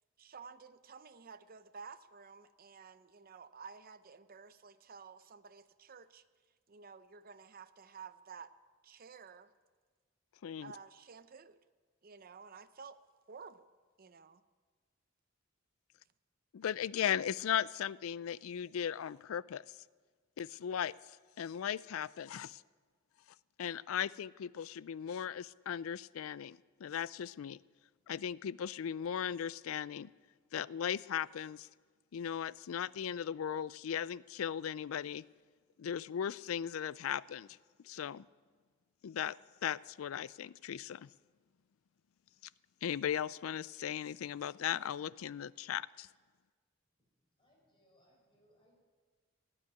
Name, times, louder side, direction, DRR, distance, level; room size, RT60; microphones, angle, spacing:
voice 1, 0.2-6.2 6.7-8.5 8.8-9.5 10.6-11.6 12.0-13.0 13.3-13.7 14.0-14.4, right 5 dB, 45° right, 13 dB, 0.6 m, -52 dB
voice 2, 10.4-10.7 16.5-19.8 20.4-22.6 23.6-27.6 28.1-30.1 30.5-31.7 32.1-35.2 35.8-37.5 37.8-38.3 39.0-39.4 39.6-41.1 42.8-46.1, left 9 dB, 90° left, 20 dB, 0.4 m, -37 dB
voice 3, 47.4-48.7, equal, 25° left, -2 dB, 6.0 m, -70 dB
16.5 x 8.7 x 9.5 m, 1.5 s
head